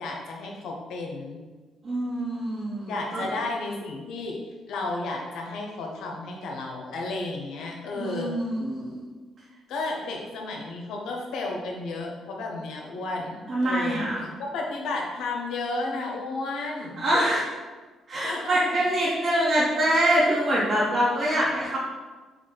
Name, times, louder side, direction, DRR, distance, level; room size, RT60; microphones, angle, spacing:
voice 1, 0.0-1.4 2.9-4.4 4.7-8.3 9.7-14.0 14.5-17.0 18.2-18.6 19.0-19.1, left 3 dB, 80° left, 0 dB, 0.8 m, -32 dB
voice 2, 1.8-3.3 7.9-9.0 13.5-14.3 17.0-17.5 18.1-21.8, right 1 dB, 50° right, -7 dB, 1.1 m, -24 dB
4.7 x 2.4 x 3.8 m, 1.3 s
cardioid pair, 90°, 0 cm